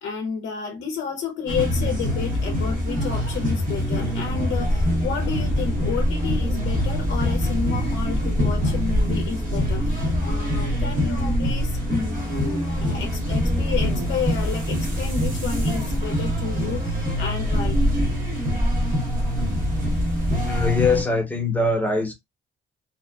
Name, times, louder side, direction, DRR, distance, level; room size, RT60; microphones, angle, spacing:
voice 1, 0.0-17.8, left 6 dB, 60° left, 0.5 m, -31 dB
sound 1, 1.5-21.0, equal, 45° right, 1.0 m, -24 dB
voice 2, 20.3-22.1, left 3 dB, 10° left, 0.9 m, -22 dB
2.8 x 2.1 x 2.3 m
cardioid pair, 90°, 20 cm